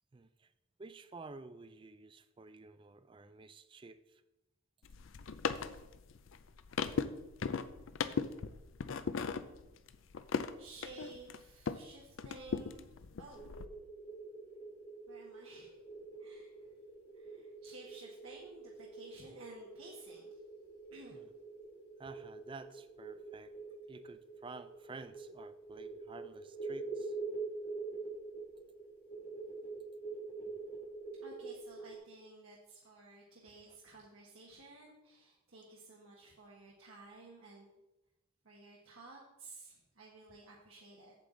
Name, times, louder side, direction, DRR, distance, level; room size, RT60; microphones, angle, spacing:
voice 1, 0.1-0.5 0.8-4.2 9.1-9.4 21.1-21.3 22.0-23.5 23.9-27.2 29.6-29.8 33.7-33.8, right 3 dB, 25° right, 13 dB, 0.4 m, -52 dB
sound 1, 4.8-11.9 12.2-13.7, left 5 dB, 65° left, 0.5 m, -38 dB
voice 2, 10.6-12.9 13.2-13.4 15.1-15.8 16.2-16.5 17.1-20.3 20.9-21.2 31.2-37.7 38.4-41.1, right 2 dB, 80° right, -4 dB, 1.4 m, -54 dB
sound 2, 13.3-32.0, right 3 dB, 50° left, 1.6 m, -46 dB
8.2 x 7.7 x 3.8 m, 0.96 s
head